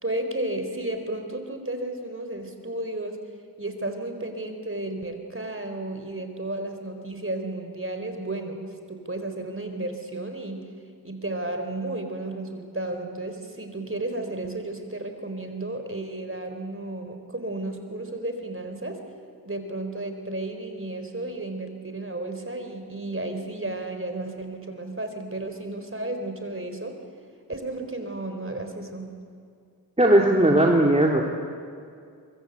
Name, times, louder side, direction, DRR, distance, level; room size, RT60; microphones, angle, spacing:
voice 1, 0.0-3.2 3.6-10.7 11.0-19.0 19.4-27.0 27.5-29.1, right 2 dB, 35° right, 6 dB, 4.2 m, -33 dB
voice 2, 30.0-31.2, right 1 dB, 15° right, 0 dB, 2.6 m, -18 dB
24.0 x 24.0 x 8.2 m, 2.3 s
cardioid pair, 45°, 39 cm